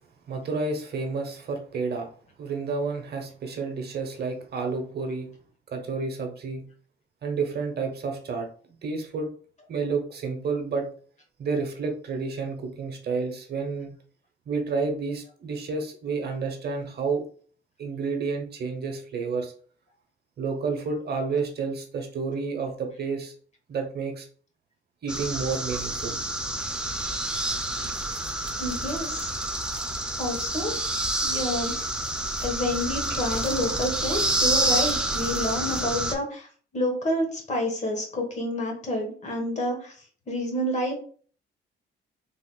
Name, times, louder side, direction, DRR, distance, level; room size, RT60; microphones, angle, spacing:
voice 1, 0.3-2.1 2.4-5.3 5.7-6.6 7.2-8.5 8.8-9.3 9.7-10.9 11.4-13.9 14.5-17.2 17.8-19.5 20.4-23.3 23.7-24.3 25.0-26.2, right 4 dB, 55° right, 4 dB, 0.8 m, -30 dB
sound 1, 25.1-36.1, right 1 dB, 5° right, 0.5 m, -28 dB
voice 2, 28.6-29.3 29.7-29.9 30.2-30.7 31.2-31.7 32.4-39.9 40.3-41.0, left 1 dB, 35° left, 2 dB, 1.2 m, -29 dB
3.4 x 2.8 x 2.2 m, 0.44 s
cardioid pair, 90°, 20 cm